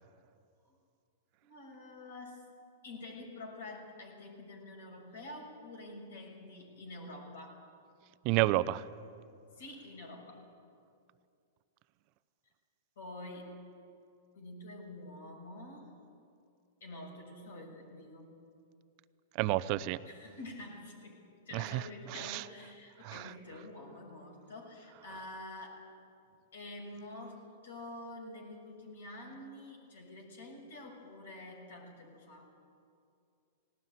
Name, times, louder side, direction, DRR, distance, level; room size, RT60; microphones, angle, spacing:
voice 1, 1.4-2.4 2.8-7.6 9.6-10.4 13.0-13.6 14.3-15.9 16.8-18.3 20.0-21.2 21.5-25.9 26.5-32.5, left 2 dB, 70° left, 1 dB, 6.6 m, -47 dB
voice 2, 8.2-8.8 19.4-20.0 21.5-21.8 22.1-22.4 23.0-23.2, right 16 dB, 45° right, 16 dB, 0.7 m, -30 dB
19.0 x 18.5 x 9.3 m, 2.4 s
hypercardioid pair, 105°, 0 cm